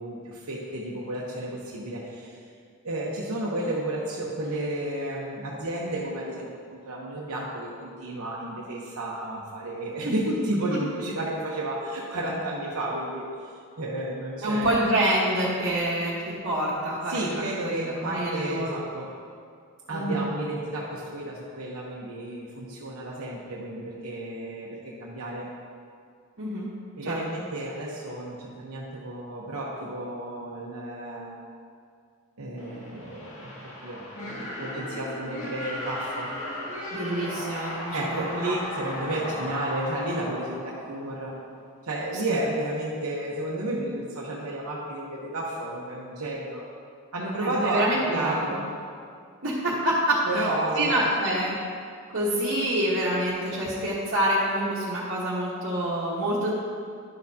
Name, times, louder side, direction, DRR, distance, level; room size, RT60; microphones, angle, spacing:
voice 1, 0.0-2.4 2.8-13.2 13.8-14.9 17.1-19.1 19.9-25.5 27.0-31.4 32.4-36.3 37.9-41.4 41.8-46.6 47.1-48.7 50.3-51.1, right 1 dB, 85° right, -4 dB, 1.0 m, -32 dB
voice 2, 14.4-17.7 18.0-18.7 19.9-20.2 26.4-26.7 27.0-27.2 36.9-38.5 47.4-48.5 49.4-50.5 50.7-51.5 52.1-56.5, right 1 dB, 55° right, -9 dB, 1.3 m, -27 dB
sound 1, 32.6-41.4, left 1 dB, 70° left, 1.9 m, -36 dB
11.0 x 6.6 x 2.8 m, 2.2 s
head